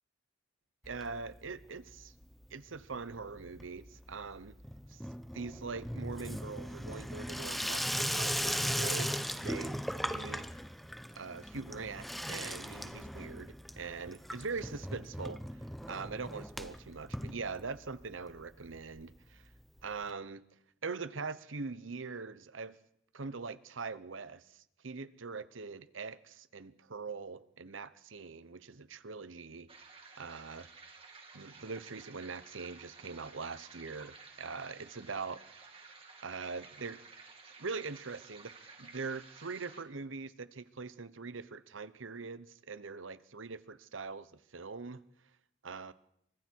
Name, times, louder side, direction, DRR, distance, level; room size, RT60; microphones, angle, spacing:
Water tap faucet / Sink (filling or washing), 0.8-1.6 1.9-2.5 2.7-18.0 18.4-18.5 18.6-18.7 19.0-19.1 20.1-20.2, equal, ahead, 0.8 m, -38 dB
voice 1, 0.8-2.1 2.5-4.5 4.9-5.0 5.3-10.5 11.1-19.4 19.8-20.4 20.8-22.8 23.1-29.7 30.2-30.7 31.3-35.9 36.2-37.0 37.6-45.0 45.6-45.9, right 4 dB, 85° right, 1.0 m, -42 dB
sound 1, 29.7-39.8, right 4 dB, 30° right, 2.9 m, -54 dB
29.5 x 25.0 x 4.7 m
head